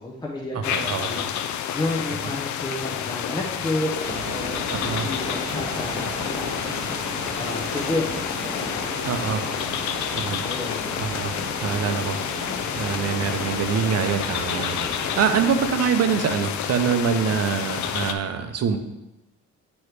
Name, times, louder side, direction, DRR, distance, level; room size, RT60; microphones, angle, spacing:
voice 1, 0.0-1.5 1.7-6.7 7.3-8.8 10.4-10.8, left 2 dB, 15° left, -2 dB, 0.7 m, -31 dB
voice 2, 0.5-1.1 2.2-2.3 4.7-5.1 9.0-9.4 10.2-10.4 11.0-11.3 11.6-12.2 12.8-18.8, right 7 dB, 55° right, 7 dB, 0.7 m, -25 dB
sound 1, 0.6-18.1, left 9 dB, 70° left, 0.5 m, -29 dB
sound 2, 4.0-15.5, right 1 dB, 30° right, 1.8 m, -34 dB
9.2 x 3.1 x 3.2 m, 0.95 s
cardioid pair, 90°, 30 cm